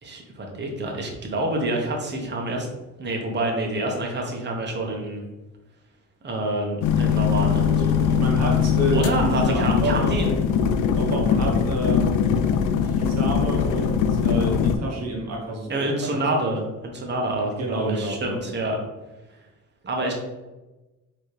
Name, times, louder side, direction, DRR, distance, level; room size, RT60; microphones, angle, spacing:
voice 1, 0.0-2.7 3.0-5.2 6.2-8.2 8.9-10.3 15.7-18.8 19.8-20.1, right 1 dB, 35° right, 0 dB, 1.1 m, -27 dB
sound 1, 6.8-14.8, left 7 dB, 80° left, 0.5 m, -21 dB
voice 2, 8.1-10.1 10.9-12.2 12.8-15.9 16.5-16.6 17.6-18.6, right 1 dB, 60° right, 0 dB, 1.2 m, -29 dB
4.5 x 3.1 x 3.3 m, 1.1 s
cardioid pair, 90°, 30 cm